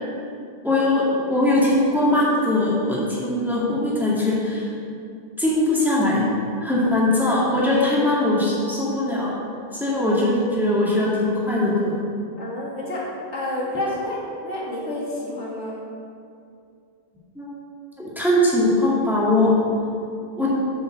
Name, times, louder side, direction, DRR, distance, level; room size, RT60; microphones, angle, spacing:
voice 1, 0.6-1.0 1.3-4.7 5.4-6.2 6.6-9.3 9.7-12.0 17.4-17.5 18.2-19.5 20.4-20.5, left 1 dB, ahead, -7 dB, 2.1 m, -20 dB
voice 2, 12.4-15.8, left 1 dB, 75° left, -5 dB, 2.2 m, -29 dB
8.3 x 5.7 x 6.4 m, 2.4 s
omnidirectional pair, 1.2 m